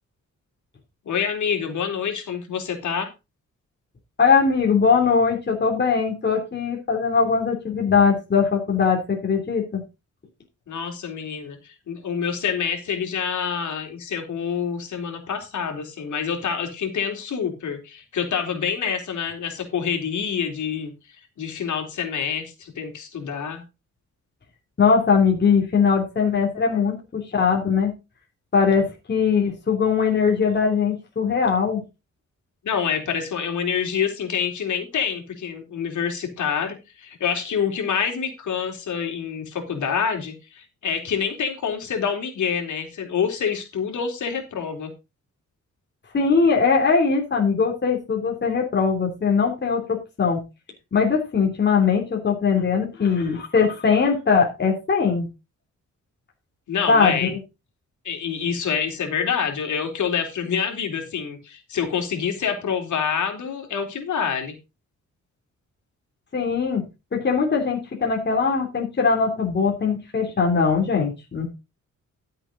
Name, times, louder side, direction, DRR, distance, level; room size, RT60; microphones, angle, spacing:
voice 1, 1.1-3.1 10.7-20.9 21.4-23.6 26.5-26.8 32.6-44.9 56.7-57.3 58.0-64.5, left 7 dB, 75° left, 4 dB, 3.8 m, -27 dB
voice 2, 4.2-9.8 24.8-27.9 28.5-31.8 46.1-50.4 50.9-55.3 56.9-57.4 66.3-66.8 67.1-71.5, left 5 dB, 35° left, 1 dB, 3.2 m, -21 dB
13.0 x 7.8 x 3.9 m, 0.27 s
wide cardioid pair, 130°, 30 cm